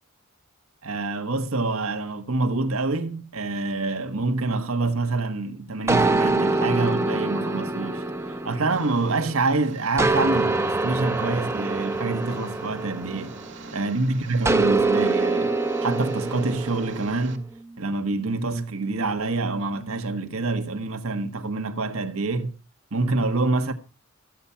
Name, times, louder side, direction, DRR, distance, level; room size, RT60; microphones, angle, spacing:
voice 1, 0.8-13.4 13.7-15.6 15.8-17.5 17.8-22.5 22.9-23.7, right 3 dB, 75° right, 1.4 m, -26 dB
sound 1, 5.9-9.4 10.0-13.7 14.5-17.1, right 3 dB, 15° right, 0.8 m, -25 dB
Engine, 8.7-17.4, right 4 dB, 55° right, 1.8 m, -46 dB
sound 2, 12.9-20.0, right 2 dB, 70° left, 2.6 m, -47 dB
14.5 x 8.5 x 5.7 m
head